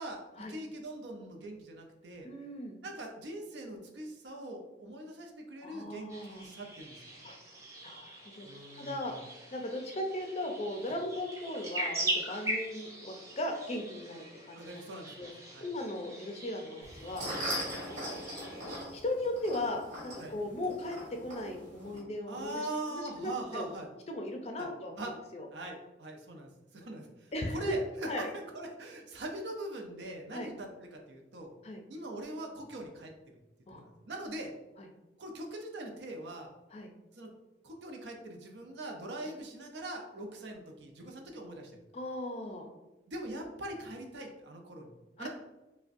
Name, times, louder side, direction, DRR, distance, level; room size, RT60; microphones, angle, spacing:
voice 1, 0.5-2.3 2.8-7.2 8.4-9.1 14.5-15.7 20.2-20.3 22.3-23.9 24.6-24.7 25.0-25.1 25.5-31.5 31.9-33.1 33.7-34.5 35.2-36.5 37.1-37.3 37.6-41.7 43.1-45.3, right 1 dB, 80° right, 2 dB, 0.6 m, -42 dB
voice 2, 2.2-2.8 5.6-6.4 7.2-7.4 7.8-8.5 8.7-9.1 9.5-14.9 15.1-15.3 15.6-17.4 17.7-18.3 18.9-22.6 22.9-23.7 24.1-25.5 27.3-27.8 28.1-28.3 30.3-30.5 31.6-31.8 33.7-33.9 34.8-34.9 36.7-36.9 41.9-42.7 45.2-45.3, left 1 dB, 35° left, 3 dB, 0.4 m, -37 dB
sound 1, 6.1-18.8, right 1 dB, 20° right, 0.5 m, -41 dB
sound 2, 16.8-22.0, equal, 45° right, 1.4 m, -40 dB
4.9 x 2.1 x 2.6 m, 1.0 s
head